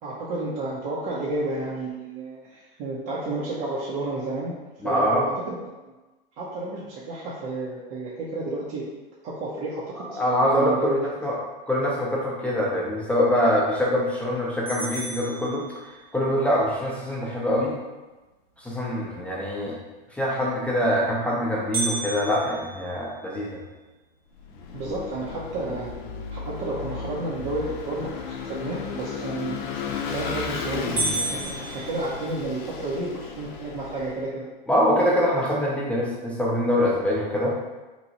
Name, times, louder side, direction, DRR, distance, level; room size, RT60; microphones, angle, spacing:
voice 1, 0.0-4.6 4.8-5.9 6.4-8.8 9.2-10.2 10.5-11.1 24.7-25.9 26.3-29.6 30.1-34.5, right 2 dB, 45° right, -6 dB, 0.8 m, -31 dB
voice 2, 4.8-5.2 10.1-11.3 11.7-15.7 16.1-17.8 18.6-19.8 20.1-23.6 34.7-37.5, equal, 5° left, -5 dB, 0.6 m, -24 dB
sound 1, 14.7-16.2 21.7-23.9 24.4-24.5 25.0-25.1 25.8-26.1 29.7-30.1 30.5-30.6 31.0-32.7, right 3 dB, 80° right, 1.4 m, -32 dB
Vehicle / Engine, 24.4-34.2, left 5 dB, 55° left, 0.6 m, -34 dB
3.1 x 2.3 x 3.9 m, 1.2 s
hypercardioid pair, 120°, 29 cm